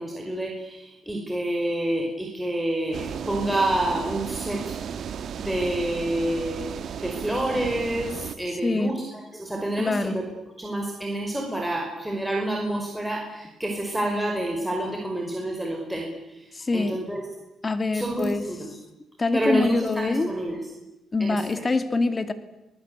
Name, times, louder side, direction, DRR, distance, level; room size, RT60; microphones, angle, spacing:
voice 1, 0.0-4.8 5.4-10.2 10.6-17.2 17.9-18.7 19.3-20.6 21.2-21.5, right 1 dB, 5° right, 0 dB, 5.3 m, -28 dB
sound 1, 2.9-8.4, right 7 dB, 65° right, 1.8 m, -34 dB
voice 2, 8.6-8.9 9.8-10.2 16.5-17.0 17.6-18.4 19.2-20.3 21.1-22.3, left 3 dB, 25° left, 11 dB, 2.4 m, -25 dB
28.0 x 19.5 x 8.3 m, 0.94 s
cardioid pair, 90°, 0 cm